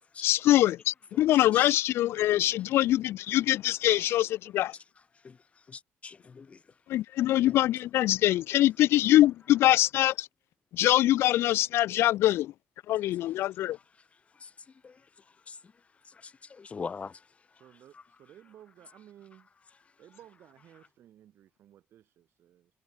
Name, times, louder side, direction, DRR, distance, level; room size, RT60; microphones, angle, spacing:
voice 1, 0.2-4.8 6.9-10.3 10.7-12.5 12.9-13.8, left 14 dB, 80° left, 0.6 m, -24 dB
voice 2, 5.7-6.6 14.4-14.5 14.8-14.9 15.5-15.6 16.5-17.1, left 5 dB, 30° left, 0.4 m, -41 dB
voice 3, 17.5-19.5 20.0-22.7, right 11 dB, 70° right, 6.8 m, -56 dB
cardioid pair, 105°, 4 cm